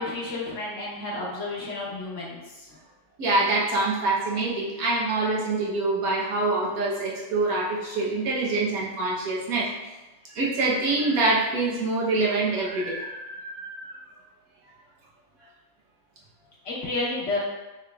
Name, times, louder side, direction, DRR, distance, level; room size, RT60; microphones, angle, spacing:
voice 1, 0.0-2.7 16.6-17.4, left 2 dB, 60° left, -4 dB, 1.3 m, -31 dB
voice 2, 3.2-9.7 10.3-14.0, right 2 dB, 85° right, -4 dB, 1.4 m, -25 dB
6.2 x 3.3 x 2.3 m, 1.1 s
omnidirectional pair, 1.5 m